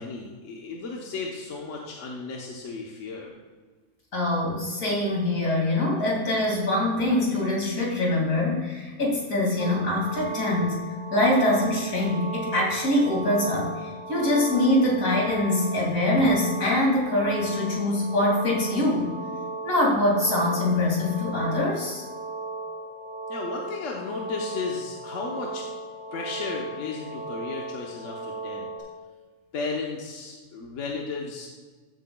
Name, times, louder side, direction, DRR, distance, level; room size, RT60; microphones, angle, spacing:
voice 1, 0.0-3.3 23.3-25.6 26.1-28.7 29.5-31.5, left 4 dB, 65° left, -1 dB, 1.3 m, -34 dB
voice 2, 4.1-10.8 11.1-19.1 19.6-22.0, left 1 dB, 85° left, -3 dB, 2.7 m, -24 dB
sound 1, 9.6-28.8, right 2 dB, 40° left, 1.9 m, -36 dB
14.0 x 8.0 x 2.3 m, 1.4 s
omnidirectional pair, 1.4 m